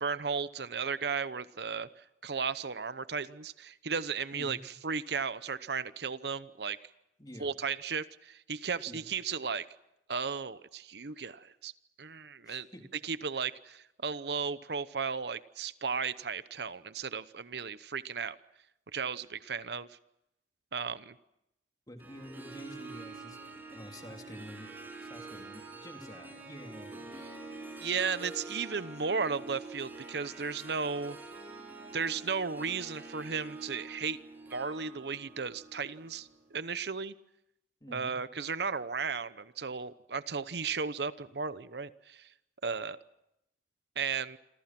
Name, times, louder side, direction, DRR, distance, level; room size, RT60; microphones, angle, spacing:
voice 1, 0.0-6.8 7.4-9.7 10.1-11.7 12.0-12.7 13.0-18.4 18.9-19.9 20.7-21.2 27.8-31.2 31.9-34.2 34.5-37.1 37.9-42.3 42.6-43.0 44.0-44.4, right 5 dB, 70° right, 15 dB, 0.8 m, -35 dB
voice 2, 4.3-4.6 7.2-7.5 8.9-9.0 12.4-12.8 21.9-23.4 23.7-24.7 25.0-27.2 37.8-38.1, left 1 dB, 20° left, 3 dB, 3.1 m, -48 dB
Harp, 22.0-36.5, right 3 dB, 10° right, 6.5 m, -46 dB
27.5 x 26.5 x 6.0 m, 0.84 s
head